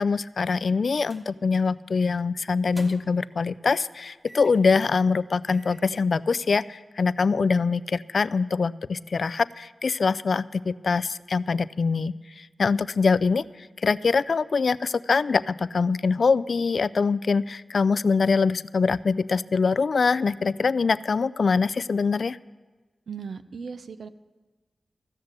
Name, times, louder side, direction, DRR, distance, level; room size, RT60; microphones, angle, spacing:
voice 1, 0.0-12.1 12.6-13.5 13.8-22.4, left 4 dB, 70° left, 16 dB, 0.3 m, -23 dB
sound 1, 1.0-1.3 1.6-1.9 2.5-3.3 4.3-4.7 5.2-5.3 5.5-5.9, right 1 dB, 35° right, 1.7 m, -49 dB
voice 2, 23.1-24.1, right 6 dB, 80° right, 11 dB, 0.6 m, -37 dB
14.5 x 6.6 x 8.2 m, 1.3 s
cardioid pair, 40°, 0 cm